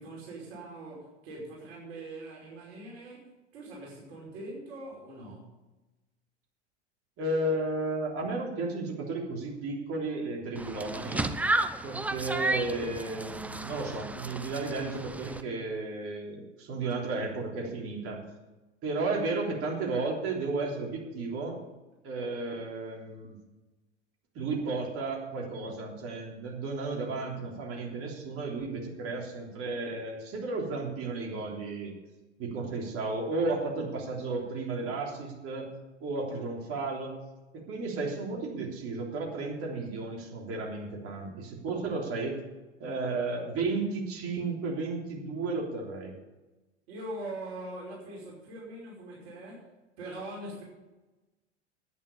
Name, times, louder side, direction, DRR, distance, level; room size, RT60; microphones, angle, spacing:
voice 1, 0.0-5.5 46.9-49.7 50.0-50.6, right 1 dB, 60° right, -4 dB, 5.4 m, -42 dB
voice 2, 7.2-11.3 11.8-18.2 18.8-21.6 22.0-23.3 24.4-31.9 32.4-35.7 36.0-37.1 37.7-42.4 42.8-46.1, right 3 dB, 40° right, -1 dB, 3.4 m, -33 dB
sound 1, 10.6-15.4, right 2 dB, 5° right, 0.6 m, -33 dB
11.0 x 9.7 x 7.2 m, 1.1 s
hypercardioid pair, 90°, 36 cm